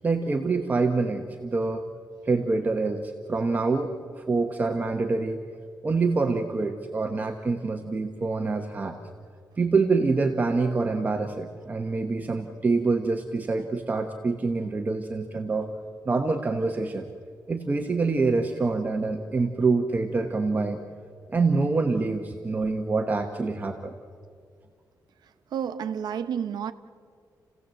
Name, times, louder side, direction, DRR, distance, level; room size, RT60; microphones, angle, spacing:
voice 1, 0.0-1.9 2.2-5.4 5.8-9.0 9.6-15.7 16.0-17.0 17.5-20.8 21.3-23.9, right 3 dB, 25° right, 1.0 m, -26 dB
voice 2, 25.5-26.7, right 8 dB, 70° right, 1.0 m, -30 dB
29.5 x 16.5 x 7.8 m
wide cardioid pair, 180°, 7 cm